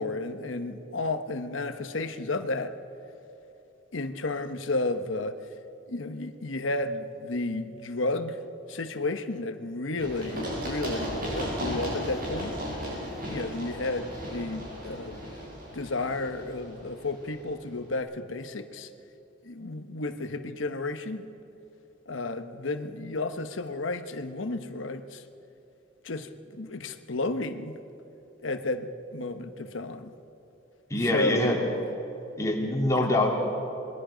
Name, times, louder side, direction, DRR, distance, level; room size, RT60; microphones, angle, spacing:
voice 1, 0.0-2.7 3.9-5.4 5.9-8.4 8.7-12.6 13.3-15.2 15.7-18.9 19.4-21.3 22.1-25.2 26.0-27.8 28.4-30.1 31.0-31.6 33.0-33.1, left 2 dB, 85° left, 9 dB, 1.1 m, -32 dB
Run, 10.0-17.6, equal, 50° right, 6.8 m, -35 dB
voice 2, 30.9-31.6 32.4-33.3, left 1 dB, 15° left, -1 dB, 3.0 m, -24 dB
27.5 x 21.5 x 5.1 m, 3.0 s
head